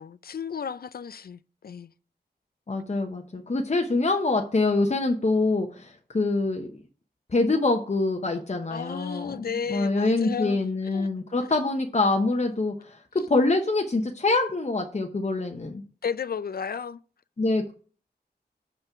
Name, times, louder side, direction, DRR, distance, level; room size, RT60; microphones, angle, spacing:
voice 1, 0.0-1.9 8.7-10.6 10.9-11.1 16.0-17.0, left 7 dB, 60° left, 0.4 m, -33 dB
voice 2, 2.7-6.8 7.3-15.8 17.4-17.7, left 2 dB, 40° left, 0.8 m, -25 dB
5.7 x 5.3 x 5.7 m
cardioid pair, 50°, 17 cm